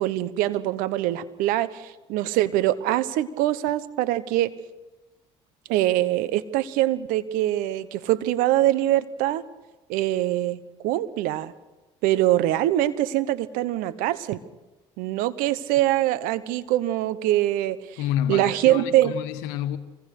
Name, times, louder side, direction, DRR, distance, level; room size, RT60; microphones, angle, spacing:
voice 1, 0.0-4.5 5.7-9.4 9.9-11.5 12.0-14.4 15.0-17.8 18.3-19.2, right 14 dB, 75° right, 1.2 m, -23 dB
voice 2, 18.0-19.8, left 11 dB, 85° left, 1.3 m, -28 dB
25.5 x 20.0 x 6.7 m
supercardioid pair, 70°, 14 cm